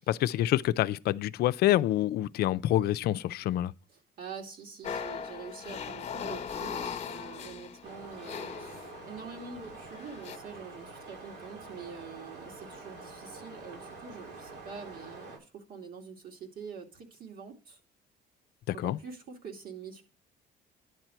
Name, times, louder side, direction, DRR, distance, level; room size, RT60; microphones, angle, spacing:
voice 1, 0.1-3.7 18.7-19.0, left 13 dB, 70° left, 0.5 m, -27 dB
voice 2, 3.9-17.8 18.7-20.0, right 5 dB, 60° right, 2.6 m, -45 dB
sound 1, 4.8-9.3 10.0-10.4, left 7 dB, 40° left, 1.2 m, -39 dB
sound 2, 7.8-15.4, right 3 dB, 80° right, 7.0 m, -47 dB
10.5 x 4.4 x 7.8 m
cardioid pair, 110°, 17 cm